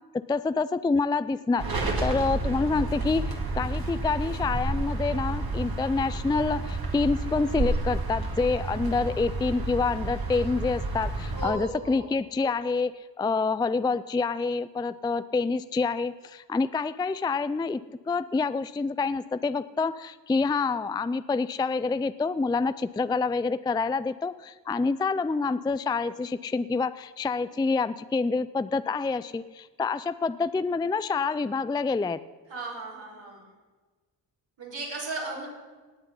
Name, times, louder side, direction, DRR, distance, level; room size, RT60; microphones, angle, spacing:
voice 1, 0.3-17.8 18.1-32.2, left 4 dB, 10° left, 14 dB, 0.3 m, -27 dB
sound 1, 1.6-11.5, right 2 dB, 55° right, 2.3 m, -30 dB
voice 2, 11.3-12.1 32.5-33.5 34.6-35.5, right 3 dB, 75° right, -5 dB, 5.1 m, -36 dB
18.5 x 8.1 x 5.6 m, 1.3 s
cardioid pair, 60°, 44 cm